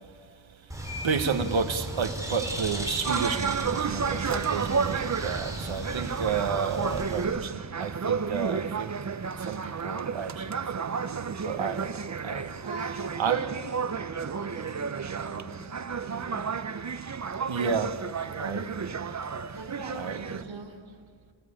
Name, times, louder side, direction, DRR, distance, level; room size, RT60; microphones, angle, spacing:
Bird, 0.7-7.2, right 1 dB, 5° right, 4.1 m, -36 dB
voice 1, 1.0-8.9 9.4-12.6 13.2-13.5 17.5-18.0 18.4-19.0 19.9-20.4, right 5 dB, 80° right, 1.5 m, -31 dB
sound 1, 3.0-20.4, right 6 dB, 40° right, 0.8 m, -32 dB
voice 2, 6.9-7.3 12.6-16.5 18.3-18.7 19.5-20.7, right 3 dB, 55° right, 3.7 m, -42 dB
28.5 x 19.0 x 8.7 m
wide cardioid pair, 145°, 46 cm